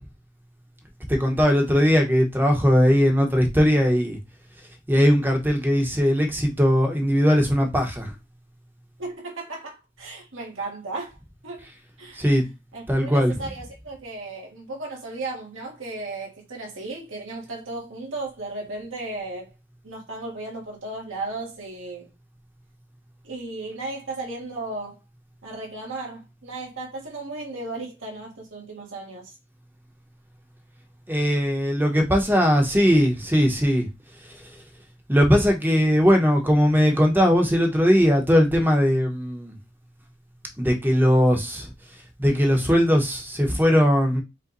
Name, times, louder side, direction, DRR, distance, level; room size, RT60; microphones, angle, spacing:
voice 1, 1.1-4.2 4.9-8.1 12.2-12.5 12.9-13.5 31.1-33.9 35.1-39.5 40.6-41.7 42.2-44.2, equal, 10° right, 1.1 m, -19 dB
voice 2, 9.0-11.2 11.4-11.7 12.0-12.3 12.7-19.5 19.8-22.1 23.2-25.0 25.4-29.3, right 2 dB, 80° right, 1.8 m, -35 dB
5.3 x 2.5 x 3.9 m
head